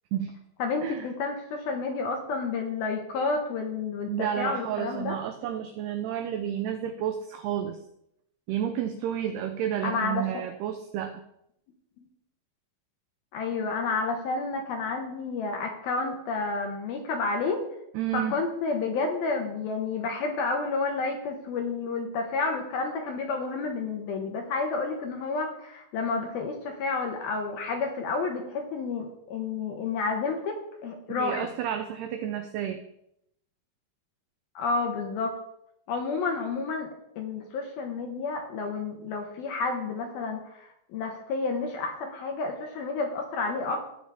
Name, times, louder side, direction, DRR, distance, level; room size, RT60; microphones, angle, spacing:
voice 1, 0.6-5.2 9.8-10.2 13.3-17.6 18.1-30.5 30.8-31.5 34.6-35.4 35.9-36.9 37.2-43.8, left 4 dB, 70° left, 3 dB, 2.4 m, -30 dB
voice 2, 4.1-7.8 8.5-11.2 17.9-18.4 31.1-32.8, right 10 dB, 90° right, 8 dB, 2.3 m, -31 dB
19.0 x 6.3 x 3.5 m, 0.78 s
omnidirectional pair, 5.4 m